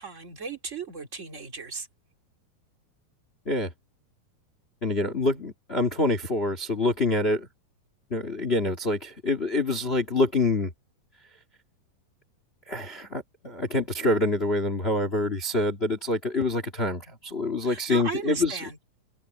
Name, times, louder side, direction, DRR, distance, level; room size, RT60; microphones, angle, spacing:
voice 1, 0.0-1.9 17.6-18.8, right 5 dB, 25° right, 1.7 m, -36 dB
voice 2, 4.8-7.5 8.1-10.7 12.7-18.6, left 2 dB, 70° left, 0.5 m, -26 dB
open air
omnidirectional pair, 4.6 m